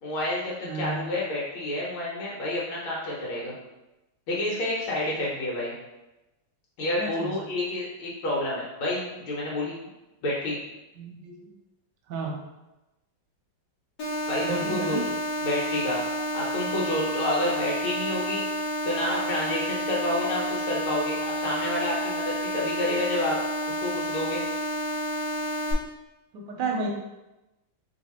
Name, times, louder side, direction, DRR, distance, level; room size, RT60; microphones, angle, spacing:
voice 1, 0.0-3.5 4.3-5.7 6.8-9.9 10.2-10.6 14.3-15.0 15.4-16.0 16.3-18.4 18.8-23.4 23.7-24.4, left 1 dB, 80° left, -5 dB, 1.7 m, -29 dB
voice 2, 0.6-1.0 7.0-7.3 11.0-11.5 12.1-12.5 14.4-15.0 26.3-26.9, right 3 dB, 70° right, 0 dB, 1.1 m, -32 dB
sound 1, 14.0-25.7, equal, 60° left, 1.3 m, -30 dB
3.2 x 2.9 x 4.2 m, 0.99 s
omnidirectional pair, 2.2 m